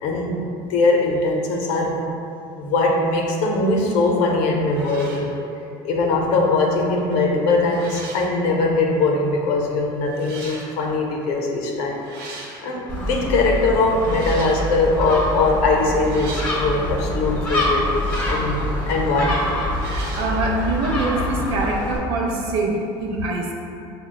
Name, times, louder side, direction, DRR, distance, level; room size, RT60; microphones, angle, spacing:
voice 1, 0.0-2.0 2.6-5.3 5.8-12.0 12.6-17.8 18.3-19.4, left 3 dB, 70° left, 0 dB, 0.6 m, -21 dB
sound 1, 4.2-4.3 4.7-5.3 7.0-7.3 7.6-8.3 9.3-9.4 10.1-10.7 11.9-12.7 14.0-14.8 16.0-16.7 17.8-18.6 19.7-20.4, right 2 dB, 90° right, 0.9 m, -38 dB
Gull seagull, 12.9-22.0, left 1 dB, 15° left, 1.0 m, -26 dB
sound 2, 15.1-22.5, equal, 10° right, 0.8 m, -37 dB
voice 2, 20.2-23.5, right 2 dB, 55° right, -1 dB, 0.6 m, -24 dB
6.1 x 2.2 x 2.2 m, 2.6 s
cardioid pair, 145°, 11 cm